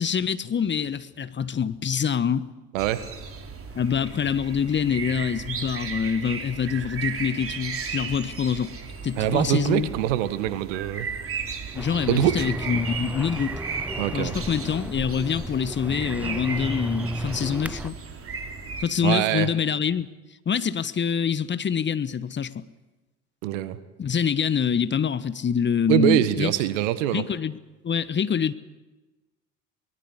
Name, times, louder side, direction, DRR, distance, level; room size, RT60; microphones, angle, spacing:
voice 1, 0.0-2.5 3.7-8.7 9.0-9.9 11.7-13.6 14.1-17.9 18.8-20.1 20.4-22.6 24.0-26.5 27.1-27.6 27.8-28.5, left 7 dB, 30° left, 1.2 m, -25 dB
voice 2, 2.7-3.0 9.2-11.1 12.1-12.5 14.0-14.3 19.0-19.5 23.4-23.8 25.9-27.2, right 13 dB, 70° right, 1.6 m, -23 dB
sound 1, 2.8-18.8, right 5 dB, 35° right, 3.5 m, -35 dB
sound 2, 11.7-17.9, right 1 dB, 5° right, 1.0 m, -33 dB
24.0 x 20.0 x 8.2 m
figure-of-eight pair, 60°, 39 cm